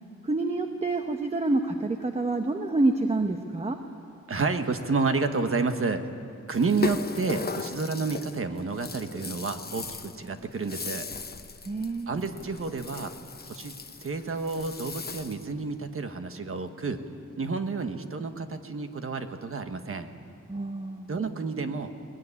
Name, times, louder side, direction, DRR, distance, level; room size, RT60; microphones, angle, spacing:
voice 1, 0.3-3.8 11.7-12.1 20.5-21.1, right 2 dB, 20° right, 5 dB, 0.9 m, -27 dB
voice 2, 4.3-6.1 6.5-11.1 12.1-13.1 13.5-13.7 14.0-17.0 17.4-20.1 21.1-21.9, right 4 dB, 45° right, 7 dB, 1.4 m, -30 dB
Rattle (instrument), 6.5-15.5, left 5 dB, 30° left, 0.9 m, -37 dB
21.0 x 20.0 x 9.9 m, 2.5 s
wide cardioid pair, 175°, 30 cm